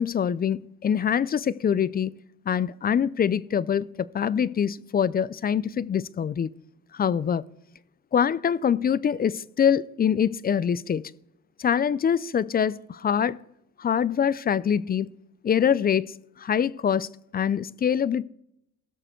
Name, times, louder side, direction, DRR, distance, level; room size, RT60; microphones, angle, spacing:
voice 1, 0.0-2.2 2.5-3.9 4.1-6.5 6.9-7.4 8.1-11.0 11.6-13.4 13.8-15.1 15.4-18.2, left 8 dB, 30° left, 0.4 m, -24 dB
16.5 x 6.7 x 4.5 m
cardioid pair, 90°, 30 cm